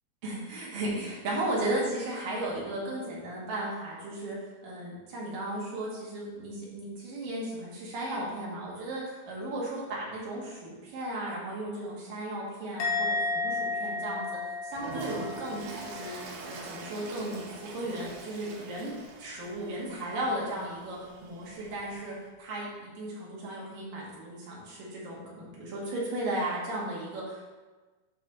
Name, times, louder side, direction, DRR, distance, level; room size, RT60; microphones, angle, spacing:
voice 1, 0.2-4.4 4.6-14.3 14.6-16.2 16.4-27.5, right 1 dB, 65° right, -5 dB, 3.5 m, -35 dB
Musical instrument, 12.8-16.2 16.5-16.9, left 3 dB, 75° left, 2.7 m, -33 dB
Toilet flush, 14.7-22.2, right 4 dB, 80° right, 2.9 m, -44 dB
13.0 x 5.1 x 3.1 m, 1.3 s
omnidirectional pair, 4.4 m